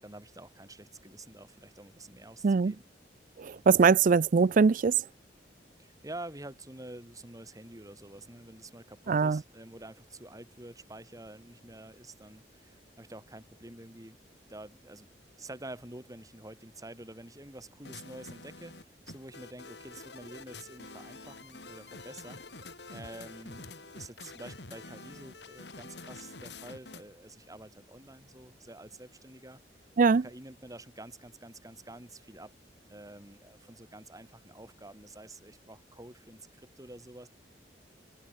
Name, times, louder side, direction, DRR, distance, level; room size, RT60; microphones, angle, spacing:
voice 1, 0.0-2.8 5.8-14.2 14.5-15.1 15.4-22.4 22.9-23.7 23.9-29.6 30.1-32.5 32.9-37.3, right 1 dB, 20° right, 5.7 m, -48 dB
voice 2, 2.4-2.7 3.4-4.9 9.1-9.4 30.0-30.2, right 5 dB, 50° right, 0.4 m, -22 dB
sound 1, 17.8-27.1, left 3 dB, 70° left, 4.4 m, -47 dB
head